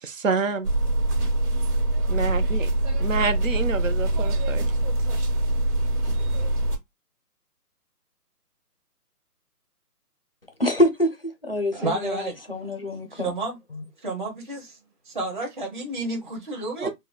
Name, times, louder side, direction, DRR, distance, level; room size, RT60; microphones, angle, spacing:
voice 1, 0.0-0.7 2.1-2.7 3.0-4.9 16.8-16.9, right 4 dB, 55° right, 0.6 m, -28 dB
sound 1, 0.6-6.8, right 1 dB, 75° right, 1.5 m, -24 dB
voice 2, 10.6-13.3 13.7-13.8, left 1 dB, 40° left, 0.5 m, -25 dB
voice 3, 11.7-12.7 13.1-13.6 14.0-14.8 15.0-16.9, right 2 dB, 30° right, 0.9 m, -31 dB
3.7 x 2.1 x 2.2 m
hypercardioid pair, 175°, 47 cm